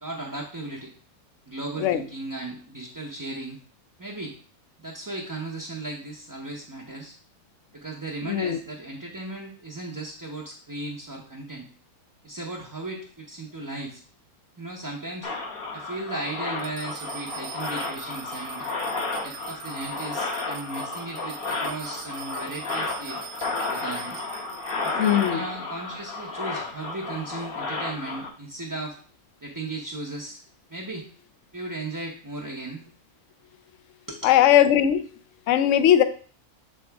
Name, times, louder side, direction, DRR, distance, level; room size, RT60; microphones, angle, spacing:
voice 1, 0.0-0.9 1.5-3.6 4.0-4.3 4.8-7.2 7.7-11.7 12.2-14.0 14.6-15.3 15.7-18.7 19.2-23.2 23.7-24.2 24.8-29.0 29.4-30.4 30.7-31.1 31.5-32.8 34.1-34.3, right 2 dB, 20° right, -3 dB, 0.5 m, -36 dB
voice 2, 8.2-8.6 24.9-25.4 34.2-35.0 35.5-36.0, left 11 dB, 65° left, 10 dB, 0.8 m, -19 dB
sound 1, 15.2-28.3, left 3 dB, 45° left, 1.1 m, -32 dB
sound 2, 16.6-25.3, right 11 dB, 85° right, 1.2 m, -43 dB
7.6 x 3.8 x 3.4 m, 0.42 s
omnidirectional pair, 1.6 m